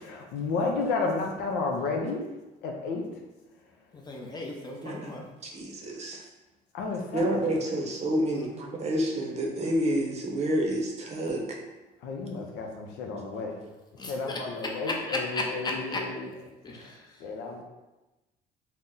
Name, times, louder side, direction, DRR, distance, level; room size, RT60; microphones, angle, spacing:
voice 1, 0.0-2.2 2.6-3.0 6.7-7.7 12.0-13.6 14.1-16.3 17.2-17.6, left 3 dB, 90° left, 1 dB, 0.5 m, -32 dB
voice 2, 3.9-5.2 8.3-8.5 14.0-14.4 14.8-16.0 16.6-17.0, left 2 dB, 25° left, 0 dB, 0.6 m, -35 dB
voice 3, 5.4-6.2 7.1-11.4, right 1 dB, 40° right, -1 dB, 0.6 m, -29 dB
2.7 x 2.1 x 3.6 m, 1.1 s
cardioid pair, 110°, 17 cm